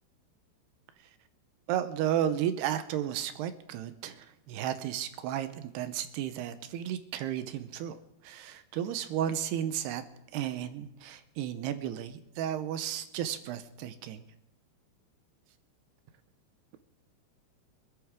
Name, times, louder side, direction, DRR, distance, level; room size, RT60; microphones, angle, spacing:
voice 1, 1.7-8.0 8.2-10.0 10.3-14.2, right 10 dB, 75° right, 10 dB, 2.5 m, -33 dB
25.5 x 11.0 x 3.6 m, 0.91 s
omnidirectional pair, 5.3 m